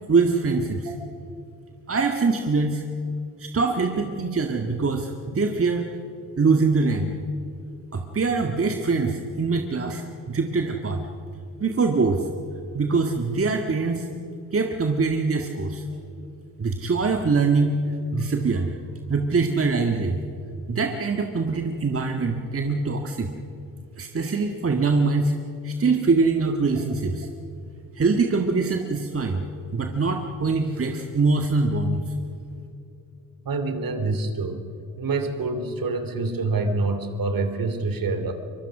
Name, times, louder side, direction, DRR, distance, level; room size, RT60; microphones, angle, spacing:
voice 1, 0.1-0.9 1.9-2.8 3.4-5.9 6.4-7.1 7.9-11.0 11.6-12.2 12.7-14.1 14.5-15.8 16.6-17.8 18.1-18.7 19.1-20.2 20.7-23.3 24.0-25.3 25.6-27.3 28.0-29.4 29.7-32.0, right 4 dB, 30° right, 4 dB, 1.9 m, -23 dB
voice 2, 33.4-34.7 35.0-38.3, right 3 dB, 45° right, 8 dB, 2.9 m, -26 dB
24.5 x 22.5 x 6.1 m, 2.6 s
hypercardioid pair, 55°, 47 cm